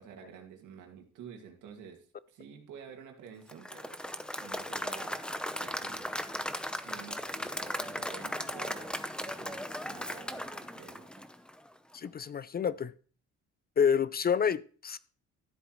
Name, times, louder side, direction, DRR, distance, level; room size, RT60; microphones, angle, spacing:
voice 1, 0.0-3.9 4.4-5.2 5.6-6.2 6.8-9.0 9.3-11.2, right 7 dB, 85° right, 2.2 m, -50 dB
Applause / Crowd, 3.5-11.7, equal, 5° left, 0.8 m, -37 dB
voice 2, 11.9-12.9 13.8-15.0, left 7 dB, 30° left, 0.4 m, -28 dB
13.0 x 7.8 x 3.1 m
cardioid pair, 90°, 30 cm